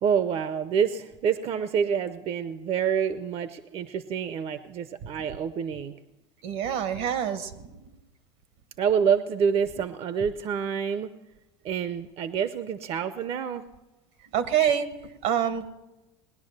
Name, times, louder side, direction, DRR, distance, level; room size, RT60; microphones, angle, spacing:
voice 1, 0.0-6.0 8.8-11.1 11.6-13.7, right 7 dB, 45° right, 12 dB, 0.7 m, -27 dB
voice 2, 6.4-7.7 14.3-14.9 15.2-15.7, right 9 dB, 75° right, 11 dB, 1.4 m, -26 dB
19.5 x 10.5 x 6.6 m, 1.0 s
supercardioid pair, 95°, 14 cm